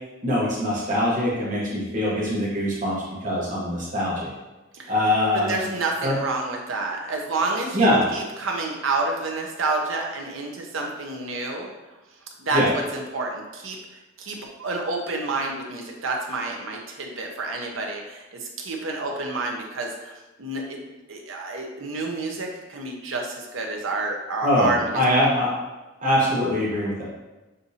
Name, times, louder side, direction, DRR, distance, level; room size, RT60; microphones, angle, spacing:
voice 1, 0.2-4.3 4.9-5.5 6.0-6.2 7.7-8.1 12.5-12.7 24.4-25.5 26.0-27.0, left 1 dB, 40° right, -6 dB, 1.0 m, -23 dB
voice 2, 5.3-11.7 12.4-13.8 14.2-20.1 20.4-20.8 21.1-25.2, right 3 dB, 80° right, 1 dB, 0.7 m, -29 dB
6.4 x 2.7 x 2.7 m, 1.1 s
head